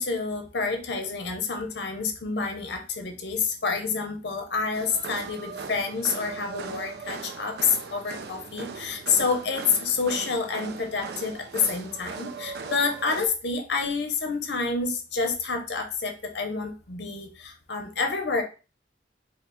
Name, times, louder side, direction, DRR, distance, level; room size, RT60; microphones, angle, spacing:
voice 1, 0.0-18.4, left 4 dB, 65° left, 5 dB, 0.7 m, -28 dB
sound 1, 4.7-13.3, right 5 dB, 60° right, 0.4 m, -39 dB
4.2 x 2.1 x 3.3 m, 0.33 s
head